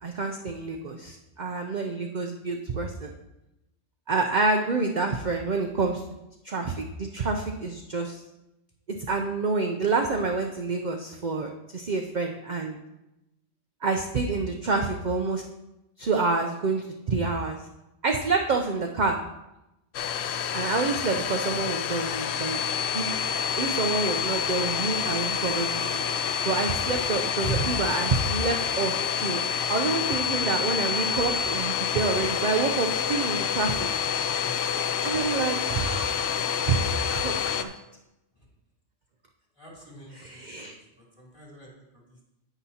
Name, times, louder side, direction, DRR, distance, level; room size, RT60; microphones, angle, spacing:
voice 1, 0.0-3.1 4.1-6.0 6.4-8.2 8.9-12.8 13.8-15.4 16.0-17.6 18.0-19.2 20.5-22.6 22.9-23.1 23.6-26.0 26.4-29.4 29.7-33.9 35.0-37.7 40.1-40.7, right 4 dB, 45° right, 3 dB, 0.6 m, -28 dB
Domestic sounds home sounds, 19.9-37.6, left 7 dB, 65° left, 0.8 m, -28 dB
voice 2, 22.0-22.3 27.4-27.7 34.3-35.0 39.6-42.3, right 2 dB, 25° left, -4 dB, 2.9 m, -38 dB
9.9 x 9.1 x 2.8 m, 0.93 s
omnidirectional pair, 1.3 m